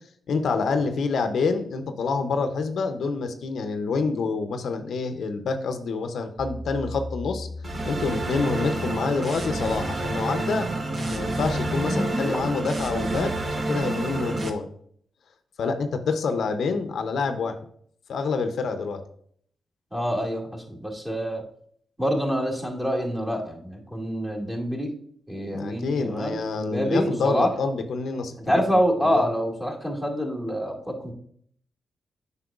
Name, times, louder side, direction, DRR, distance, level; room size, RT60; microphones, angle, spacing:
voice 1, 0.3-7.5 7.8-10.7 11.0-14.7 15.6-17.6 18.1-19.0 25.5-28.4 29.1-29.2, left 4 dB, 75° left, 7 dB, 0.6 m, -27 dB
sound 1, 6.4-12.4, left 1 dB, 15° left, 1.2 m, -35 dB
sound 2, 7.6-14.5, right 2 dB, 45° right, 0.9 m, -29 dB
voice 2, 19.9-21.4 22.0-24.9 25.3-27.5 28.4-31.1, equal, 15° right, -2 dB, 2.1 m, -26 dB
7.6 x 5.5 x 2.4 m, 0.62 s
cardioid pair, 65°, 0 cm